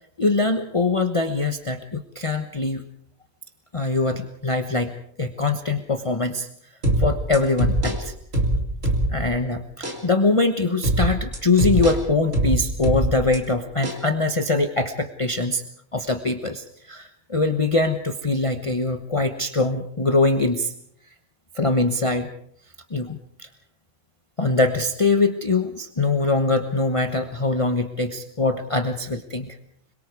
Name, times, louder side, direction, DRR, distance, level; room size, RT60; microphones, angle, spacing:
voice 1, 0.2-2.8 3.7-4.9 5.2-6.5 7.0-8.1 9.1-15.6 15.9-20.7 21.5-22.3 22.9-23.5 24.4-29.6, left 3 dB, 25° left, 6 dB, 1.1 m, -23 dB
sound 1, 6.8-9.4 9.8-10.0 10.8-13.4 13.8-14.0, right 1 dB, 90° right, 3.7 m, -23 dB
25.5 x 23.0 x 4.8 m, 0.65 s
omnidirectional pair, 1.3 m